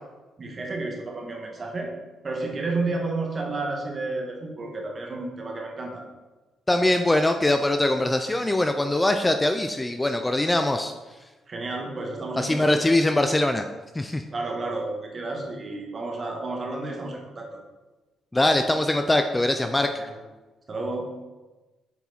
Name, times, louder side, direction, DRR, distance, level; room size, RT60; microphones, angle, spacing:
voice 1, 0.4-1.9 2.2-6.0 11.5-12.9 14.3-17.5 20.0-20.2 20.7-21.1, right 2 dB, 35° right, 0 dB, 1.5 m, -31 dB
voice 2, 6.7-10.9 12.4-13.6 13.9-14.2 18.3-19.9, left 1 dB, 15° left, 6 dB, 0.4 m, -22 dB
7.0 x 4.6 x 4.0 m, 1.2 s
cardioid pair, 90°, 0 cm